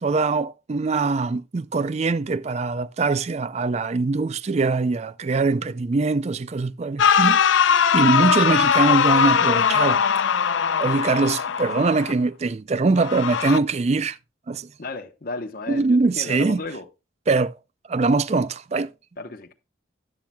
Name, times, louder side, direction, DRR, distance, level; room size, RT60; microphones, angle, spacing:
voice 1, 0.0-10.0 10.8-14.2 14.5-14.7 15.7-16.6 17.3-17.5 17.9-18.9, right 3 dB, 35° right, 0.4 m, -22 dB
sound 1, 7.0-12.1 13.0-13.6, left 7 dB, 80° left, 0.5 m, -20 dB
voice 2, 14.8-16.9 19.2-19.5, left 3 dB, 50° left, 1.0 m, -34 dB
11.5 x 11.0 x 2.2 m
head